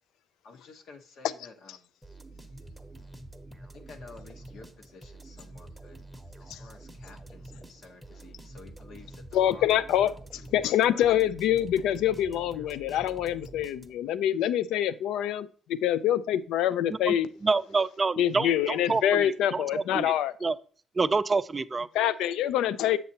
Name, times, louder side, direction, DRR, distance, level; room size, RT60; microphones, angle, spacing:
voice 1, 0.4-1.9 3.7-6.0 6.4-9.2 9.5-10.1 10.4-11.0, left 3 dB, 70° left, 1.0 m, -51 dB
sound 1, 2.0-14.2, right 2 dB, ahead, 0.8 m, -47 dB
voice 2, 9.3-10.1 10.5-17.3 18.2-20.3 21.9-23.0, left 11 dB, 90° left, 0.3 m, -25 dB
voice 3, 17.4-20.1 20.4-20.5 21.0-21.9, right 4 dB, 30° right, 0.4 m, -27 dB
7.5 x 6.6 x 2.8 m
cardioid pair, 90°, 0 cm